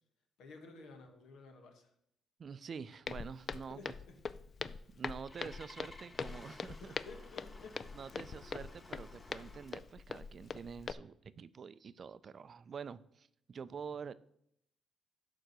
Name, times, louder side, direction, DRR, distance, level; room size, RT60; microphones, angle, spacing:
voice 1, 0.4-1.9 3.7-4.2 6.8-8.5, left 3 dB, 80° left, 1.6 m, -54 dB
voice 2, 2.4-3.9 4.6-6.9 7.9-14.1, right 6 dB, 45° right, 0.4 m, -47 dB
Walk footsteps, 3.1-10.9, left 5 dB, 45° left, 0.3 m, -43 dB
Engine starting, 4.8-9.9, left 2 dB, 30° left, 1.0 m, -56 dB
11.5 x 3.8 x 6.6 m
cardioid pair, 90°, 0 cm